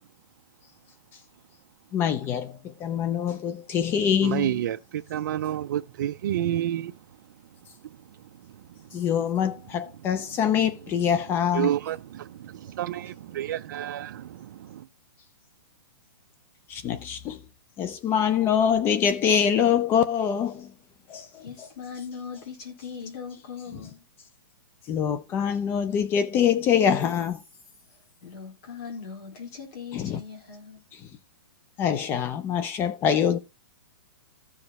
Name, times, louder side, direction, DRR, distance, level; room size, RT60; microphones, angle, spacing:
voice 1, 1.9-4.6 8.9-11.7 16.7-17.4 17.8-20.7 21.1-21.7 24.9-27.4 29.9-30.2 31.8-33.4, left 8 dB, 20° left, 0.5 m, -24 dB
voice 2, 4.2-7.0 11.5-14.9, right 11 dB, 55° right, 0.5 m, -29 dB
voice 3, 21.4-24.0 28.2-30.8, left 6 dB, 40° left, 4.4 m, -40 dB
14.0 x 5.0 x 4.1 m
hypercardioid pair, 160°, 13 cm